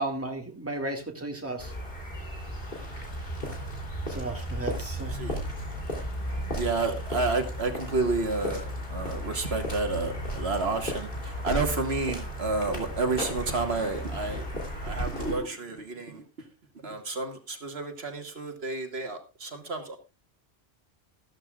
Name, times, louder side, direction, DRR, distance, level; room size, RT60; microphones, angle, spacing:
voice 1, 0.0-1.7 4.1-5.2, right 2 dB, 10° right, 1 dB, 2.0 m, -34 dB
sound 1, 1.6-15.4, equal, 55° left, 3.3 m, -34 dB
voice 2, 5.1-5.4 6.6-14.5 14.8-16.3 16.8-20.0, right 3 dB, 70° right, 5 dB, 1.8 m, -30 dB
13.5 x 13.0 x 2.4 m, 0.28 s
omnidirectional pair, 1.1 m